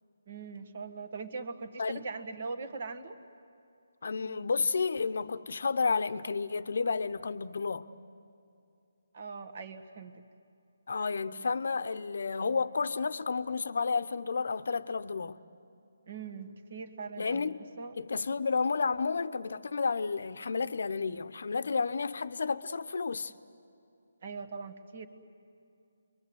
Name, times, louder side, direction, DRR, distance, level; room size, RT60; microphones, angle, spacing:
voice 1, 0.3-3.2 9.1-10.2 16.1-18.0 24.2-25.1, right 4 dB, 45° right, 1.7 m, -41 dB
voice 2, 4.0-7.9 10.9-15.4 17.2-17.6 18.0-23.3, left 4 dB, 65° left, 0.8 m, -31 dB
28.5 x 23.0 x 8.0 m
hypercardioid pair, 165°, 0 cm